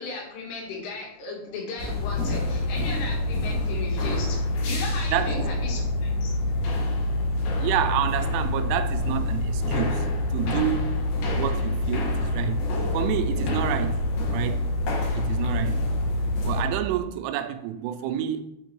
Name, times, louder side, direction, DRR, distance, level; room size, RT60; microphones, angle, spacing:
voice 1, 0.0-6.3, left 4 dB, 85° left, 4.1 m, -36 dB
sound 1, 1.8-16.6, left 2 dB, 70° left, 3.6 m, -26 dB
voice 2, 5.1-5.5 7.6-11.0 11.3-12.6 12.9-14.0 14.3-14.6 15.1-15.8 16.4-18.4, right 11 dB, 85° right, 3.1 m, -28 dB
7.8 x 4.4 x 3.0 m
omnidirectional pair, 5.6 m